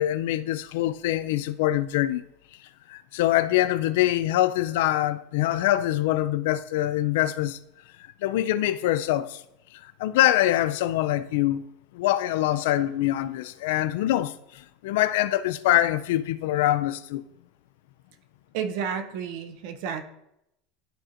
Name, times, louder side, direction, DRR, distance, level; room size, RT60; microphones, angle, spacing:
voice 1, 0.0-2.2 2.9-7.6 8.2-9.4 9.8-11.6 11.9-17.2, left 14 dB, 75° left, 0.4 m, -24 dB
voice 2, 18.5-20.0, right 7 dB, 55° right, 0.7 m, -31 dB
12.5 x 4.2 x 2.6 m
supercardioid pair, 175°, 0 cm